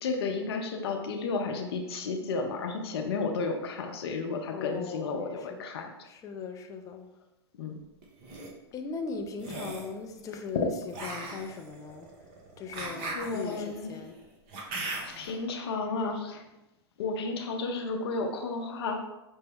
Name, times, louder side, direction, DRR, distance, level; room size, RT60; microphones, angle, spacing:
voice 1, 0.0-5.9 7.6-7.8 13.1-13.9 15.0-16.4 17.0-19.0, left 4 dB, 65° left, 3 dB, 0.7 m, -32 dB
voice 2, 4.5-5.7 6.0-7.1 8.7-12.1 12.6-14.2, left 5 dB, 25° left, 4 dB, 0.5 m, -39 dB
sound 1, 8.0-8.5 9.4-9.9 10.9-15.3, right 2 dB, 45° right, 0.9 m, -38 dB
5.2 x 2.2 x 3.4 m, 0.98 s
hypercardioid pair, 105°, 14 cm